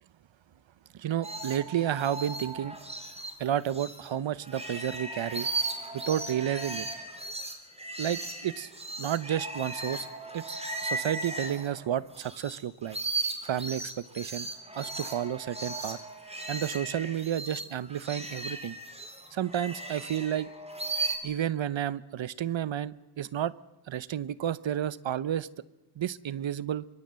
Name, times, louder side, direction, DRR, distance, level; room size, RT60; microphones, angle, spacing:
voice 1, 1.0-2.8 3.4-5.5 5.9-6.9 8.0-8.7 9.0-10.1 10.3-13.0 13.4-14.5 14.8-16.0 16.5-18.8 19.3-20.5 21.2-23.5 23.9-25.5 26.0-26.8, right 10 dB, 75° right, 18 dB, 1.0 m, -31 dB
sound 1, 1.2-4.1 4.4-12.6 12.8-21.2, right 2 dB, 15° right, 4.1 m, -37 dB
24.0 x 23.5 x 7.6 m, 1.0 s
cardioid pair, 85°, 46 cm